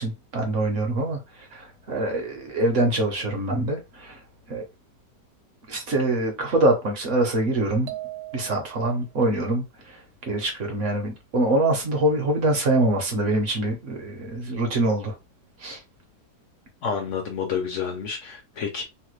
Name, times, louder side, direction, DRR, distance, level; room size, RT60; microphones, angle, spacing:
voice 1, 0.0-4.2 4.5-4.6 5.7-7.9 8.3-15.1 15.6-15.8, right 1 dB, 55° right, 0.9 m, -24 dB
sound 1, 7.9-9.1, right 16 dB, 85° right, 1.3 m, -38 dB
voice 2, 16.8-18.8, left 6 dB, 75° left, 0.7 m, -29 dB
3.2 x 2.1 x 3.1 m
omnidirectional pair, 1.8 m